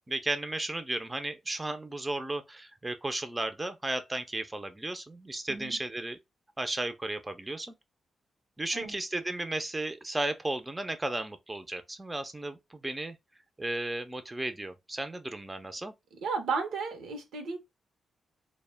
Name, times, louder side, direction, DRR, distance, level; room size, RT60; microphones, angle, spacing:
voice 1, 0.1-6.2 6.6-7.7 8.6-13.2 13.6-15.9, right 2 dB, 20° right, 0.4 m, -34 dB
voice 2, 16.2-17.6, right 4 dB, 90° right, 0.6 m, -33 dB
2.1 x 2.1 x 3.2 m
cardioid pair, 80°, 0 cm